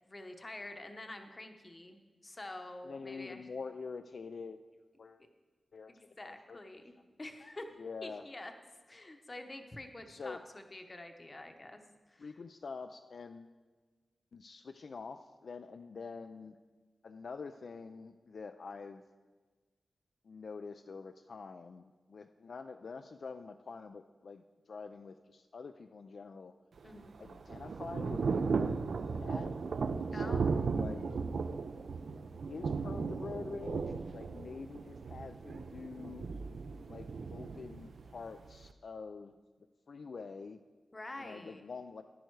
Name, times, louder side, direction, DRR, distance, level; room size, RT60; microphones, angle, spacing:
voice 1, 0.1-3.4 5.9-7.7 8.0-8.5 8.9-11.8 12.1-12.3 26.8-27.2 30.1-30.5 40.9-41.6, left 2 dB, 25° left, 6 dB, 0.9 m, -47 dB
voice 2, 2.8-4.6 5.0-5.3 5.7-6.8 7.8-8.3 10.1-10.4 12.2-13.6 14.3-16.6 17.0-19.0 20.2-26.5 27.2-29.5 30.1-31.1 32.1-36.3 36.9-39.4 39.9-40.6 41.2-42.0, left 4 dB, 55° left, 8 dB, 0.3 m, -46 dB
Thunder / Rain, 26.8-38.7, right 5 dB, 65° right, 0.4 m, -36 dB
11.0 x 10.0 x 4.6 m, 1.4 s
wide cardioid pair, 165°, 0 cm